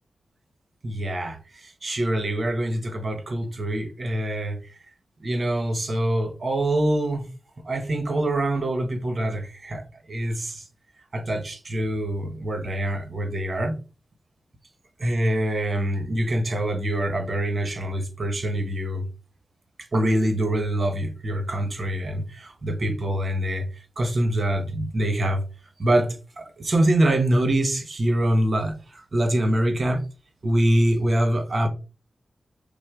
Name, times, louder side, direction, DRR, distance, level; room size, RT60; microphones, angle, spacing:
voice 1, 0.8-4.6 5.2-7.2 7.6-9.8 10.1-10.6 11.1-13.7 15.0-19.0 19.9-23.7 24.0-25.4 25.8-30.0 30.4-31.7, right 1 dB, 45° right, 1.0 m, -24 dB
6.1 x 2.1 x 3.6 m
wide cardioid pair, 95°, 0 cm